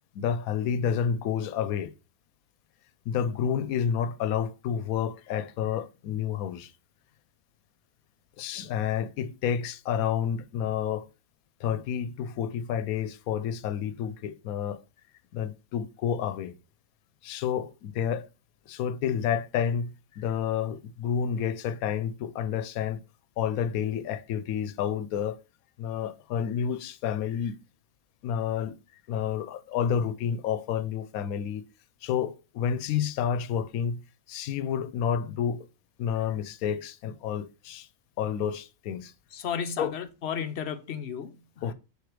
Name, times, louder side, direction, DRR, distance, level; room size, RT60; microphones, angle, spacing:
voice 1, 0.1-1.9 3.1-6.7 8.4-11.1 11.6-14.8 15.3-16.6 17.2-18.3 18.7-23.0 23.4-25.4 25.8-27.5 28.2-28.8 29.1-31.6 32.0-34.0 34.3-35.7 36.0-37.9 38.2-39.1 39.8-39.9 41.6-41.7, left 8 dB, 90° left, 1.0 m, -29 dB
voice 2, 39.3-41.7, left 7 dB, 60° left, 0.8 m, -34 dB
5.0 x 4.9 x 4.6 m
omnidirectional pair, 1.5 m